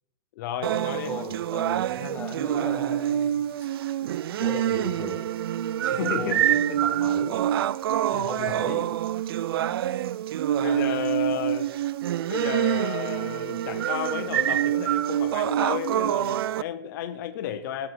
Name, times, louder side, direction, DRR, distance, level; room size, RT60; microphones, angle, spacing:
voice 1, 0.4-1.1 5.8-6.8 7.9-8.5 10.6-11.7 12.3-17.9, left 10 dB, 60° left, 8 dB, 0.8 m, -33 dB
sound 1, 0.6-16.6, right 11 dB, 85° right, 0.4 m, -26 dB
voice 2, 1.1-3.4 4.4-5.3 6.0-6.4 6.8-7.4 8.2-8.9 11.3-11.4, left 2 dB, 10° left, 1 dB, 1.9 m, -37 dB
17.5 x 6.4 x 4.5 m, 0.88 s
supercardioid pair, 145°, 12 cm